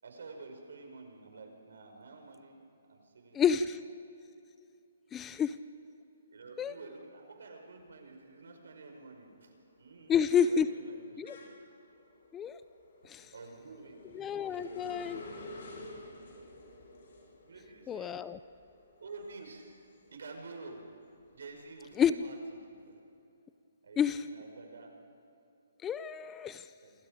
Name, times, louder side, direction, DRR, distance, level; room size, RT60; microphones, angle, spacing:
voice 1, 0.0-2.6 2.9-3.6 6.3-9.5 9.8-11.6 13.3-14.1 14.5-16.0 17.4-18.2 19.0-19.7 20.1-20.8 21.3-22.6 22.9-23.0 23.8-24.9 26.8-26.9, right 3 dB, 80° right, 3 dB, 5.4 m, -50 dB
voice 2, 3.3-3.8 5.1-5.6 6.6-6.7 10.1-10.7 11.2-11.4 12.3-12.6 13.0-13.3 14.1-15.2 17.9-18.4 22.0-22.2 24.0-24.2 25.8-26.7, left 7 dB, 10° left, 13 dB, 0.5 m, -29 dB
sound 1, 8.3-8.8 9.1-20.4 20.8-22.5, left 2 dB, 60° left, 7.7 m, -51 dB
28.0 x 25.0 x 5.2 m, 2.7 s
hypercardioid pair, 165°, 0 cm